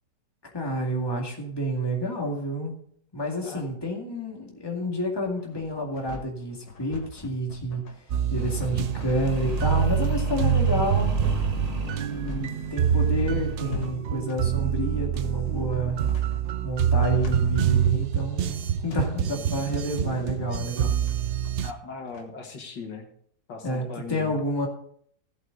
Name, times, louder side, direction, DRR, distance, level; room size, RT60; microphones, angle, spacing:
voice 1, 0.5-2.8 3.1-7.8 8.3-11.2 11.8-16.0 16.6-20.9 23.6-24.7, equal, 15° left, 0 dB, 2.1 m, -29 dB
sound 1, 4.8-22.3, left 3 dB, 65° left, 1.9 m, -44 dB
sound 2, 8.1-21.7, right 9 dB, 70° right, 0.6 m, -26 dB
sound 3, 8.4-13.7, right 3 dB, 25° right, 1.0 m, -32 dB
voice 2, 21.6-23.1 23.5-24.3, left 4 dB, 85° left, 3 dB, 2.4 m, -39 dB
15.5 x 7.9 x 4.0 m, 0.63 s
omnidirectional pair, 1.9 m